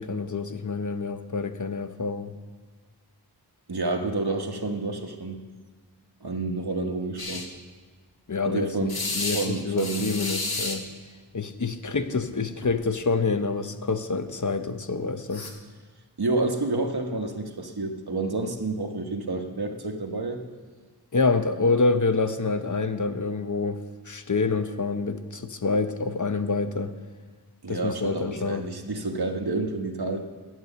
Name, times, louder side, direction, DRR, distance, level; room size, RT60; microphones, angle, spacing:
voice 1, 0.0-2.3 8.3-10.9 11.3-15.4 21.1-23.8 24.1-26.9 27.7-28.6, left 4 dB, 45° left, 9 dB, 0.7 m, -27 dB
voice 2, 3.7-5.4 6.2-7.5 8.4-8.9 9.3-10.2 16.2-20.4 27.6-30.2, right 3 dB, 65° right, 4 dB, 1.2 m, -29 dB
sound 1, 7.2-7.5 8.9-9.5 9.8-10.8 12.2-12.3 12.6-12.8 15.3-15.5, left 2 dB, 60° left, 1.4 m, -31 dB
9.4 x 8.2 x 6.9 m, 1.5 s
wide cardioid pair, 50°, 41 cm